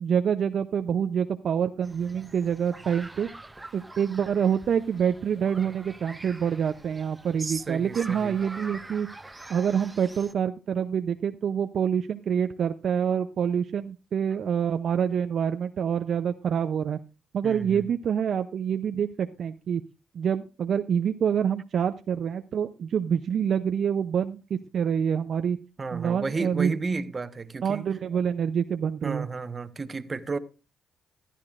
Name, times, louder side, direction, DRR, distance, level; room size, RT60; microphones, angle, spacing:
voice 1, 0.0-3.3 3.7-9.1 9.5-17.0 17.3-19.8 20.1-25.6 25.9-26.8 27.6-29.3, right 8 dB, 60° right, 0.6 m, -26 dB
sound 1, 1.8-10.3, right 2 dB, 15° right, 0.8 m, -45 dB
voice 2, 7.4-8.4 17.4-17.8 25.8-27.9 29.0-30.4, right 4 dB, 35° right, 1.2 m, -32 dB
15.0 x 12.0 x 2.5 m
supercardioid pair, 65°, 0 cm